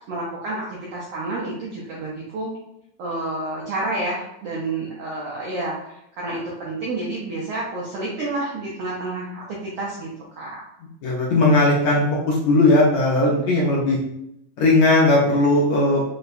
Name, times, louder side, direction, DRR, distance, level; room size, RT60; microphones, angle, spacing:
voice 1, 0.1-2.5 3.0-10.6, right 2 dB, 75° right, -5 dB, 1.4 m, -29 dB
voice 2, 11.0-14.0 14.6-16.0, left 2 dB, 75° left, -3 dB, 1.8 m, -18 dB
5.2 x 2.3 x 4.0 m, 0.79 s
omnidirectional pair, 3.8 m